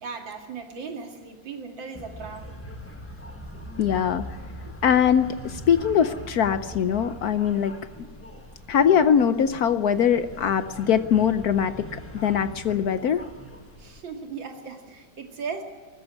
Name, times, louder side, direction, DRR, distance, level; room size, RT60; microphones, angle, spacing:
voice 1, 0.0-2.5 13.8-15.6, right 5 dB, 75° right, 4 dB, 3.0 m, -37 dB
sound 1, 1.9-14.0, equal, 5° left, 1.7 m, -41 dB
voice 2, 3.8-4.2 4.8-7.7 8.7-13.2, left 8 dB, 65° left, 12 dB, 1.1 m, -22 dB
20.5 x 13.5 x 9.7 m, 1.6 s
omnidirectional pair, 2.1 m